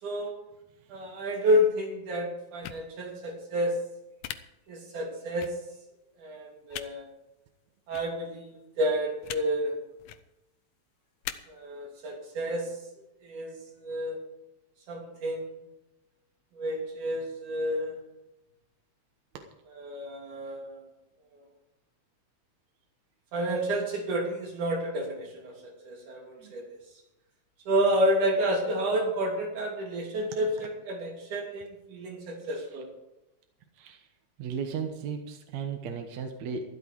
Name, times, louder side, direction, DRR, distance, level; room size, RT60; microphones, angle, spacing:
voice 1, 0.0-0.4 0.9-3.8 4.7-5.6 6.2-7.1 7.9-9.8 11.5-12.8 13.2-14.2 14.9-15.6 16.6-18.0 19.7-20.8 23.3-26.8 27.7-32.9, equal, 85° right, 0 dB, 4.5 m, -30 dB
sound 1, 2.6-2.8 4.2-4.4 5.4-5.5 6.7-6.9 7.9-8.1 9.2-9.4 10.0-10.2 11.2-11.3, left 12 dB, 85° left, 2.3 m, -37 dB
voice 2, 33.8-34.1 34.4-36.7, right 6 dB, 70° right, 4 dB, 2.4 m, -36 dB
14.5 x 12.5 x 4.7 m, 0.95 s
omnidirectional pair, 3.4 m